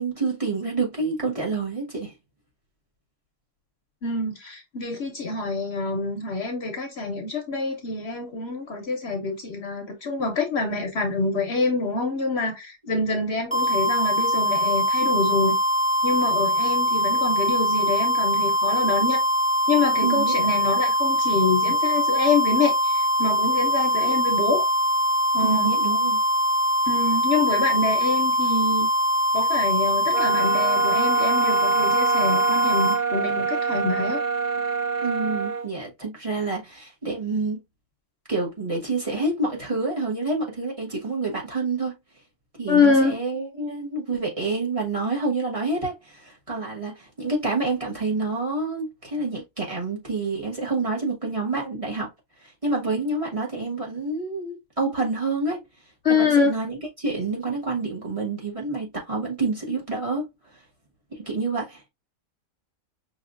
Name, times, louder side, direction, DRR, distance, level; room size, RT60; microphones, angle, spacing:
voice 1, 0.0-2.1 20.0-20.4 25.4-26.2 35.0-37.6 38.3-42.0 42.6-52.1 52.4-55.6 56.1-60.2 61.1-61.8, right 3 dB, 25° right, 1.2 m, -28 dB
voice 2, 4.0-15.6 16.0-19.2 19.7-24.7 25.3-25.7 26.9-28.9 29.3-34.2 42.7-43.1 56.0-56.5, left 3 dB, 55° left, 0.8 m, -25 dB
sound 1, 13.5-33.0, equal, 5° right, 0.8 m, -22 dB
sound 2, 30.1-35.7, right 6 dB, 45° right, 0.7 m, -26 dB
5.6 x 2.7 x 2.4 m
omnidirectional pair, 1.4 m